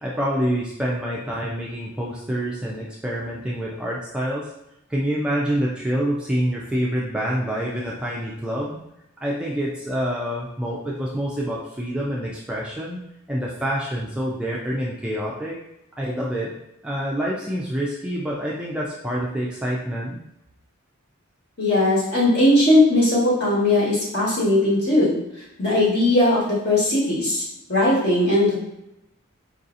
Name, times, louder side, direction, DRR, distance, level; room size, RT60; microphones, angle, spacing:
voice 1, 0.0-4.5 4.9-8.8 9.2-13.0 13.3-15.6 16.0-16.6 16.8-20.2, equal, 5° right, -5 dB, 0.3 m, -27 dB
voice 2, 21.6-25.2 25.6-27.4 27.7-28.6, left 1 dB, 50° left, -5 dB, 1.2 m, -19 dB
4.7 x 2.7 x 2.5 m, 0.85 s
head